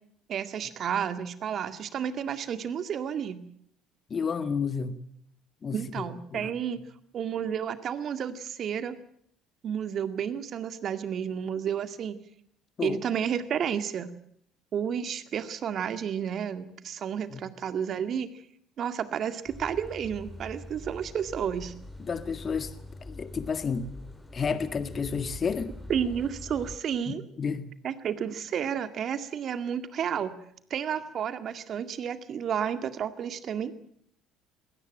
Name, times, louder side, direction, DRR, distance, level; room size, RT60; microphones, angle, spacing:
voice 1, 0.3-3.4 5.7-6.8 7.1-9.0 9.6-12.2 12.8-14.1 14.7-18.3 18.8-21.7 25.9-27.3 27.8-30.4 30.7-33.9, right 8 dB, 50° right, 11 dB, 2.0 m, -31 dB
voice 2, 4.1-4.9 5.6-6.0 6.3-6.5 12.8-13.0 17.3-17.4 22.0-22.7 23.0-23.9 24.3-25.7 27.1-27.7, left 5 dB, 35° left, 11 dB, 1.9 m, -31 dB
sound 1, 19.5-26.8, left 1 dB, 10° left, 4.1 m, -44 dB
22.0 x 18.0 x 8.8 m, 0.68 s
hypercardioid pair, 60°, 0 cm